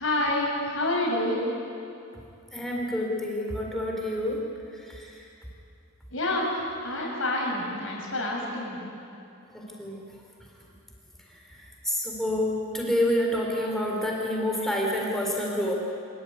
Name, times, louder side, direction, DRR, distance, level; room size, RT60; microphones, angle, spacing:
voice 1, 0.0-1.5 6.1-8.8, left 1 dB, 65° left, -2 dB, 6.6 m, -28 dB
voice 2, 2.5-5.3 9.5-10.6 11.2-15.7, left 1 dB, ahead, -2 dB, 4.1 m, -29 dB
27.5 x 14.5 x 9.8 m, 2.7 s
head